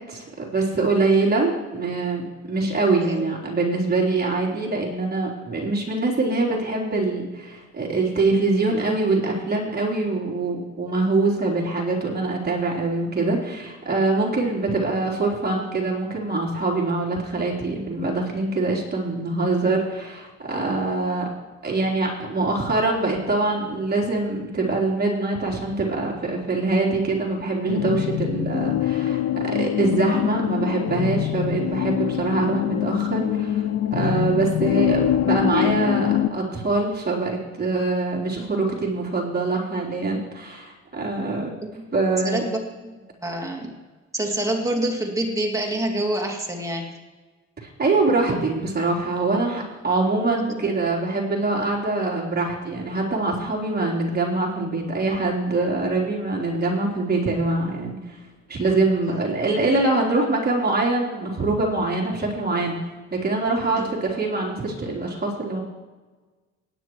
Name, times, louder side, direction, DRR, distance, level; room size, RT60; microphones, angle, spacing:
voice 1, 0.1-21.3 21.6-33.6 33.9-41.5 41.9-42.4 47.6-58.0 58.5-62.8 63.1-65.6, right 3 dB, 30° right, -3 dB, 3.8 m, -24 dB
sound 1, 27.7-36.3, left 11 dB, 55° left, 0.6 m, -24 dB
voice 2, 42.2-43.7 44.1-46.9 50.4-50.6 59.1-59.2 63.8-63.9, right 1 dB, 10° right, 0 dB, 2.5 m, -27 dB
18.5 x 9.8 x 3.2 m, 1.3 s
cardioid pair, 90°, 30 cm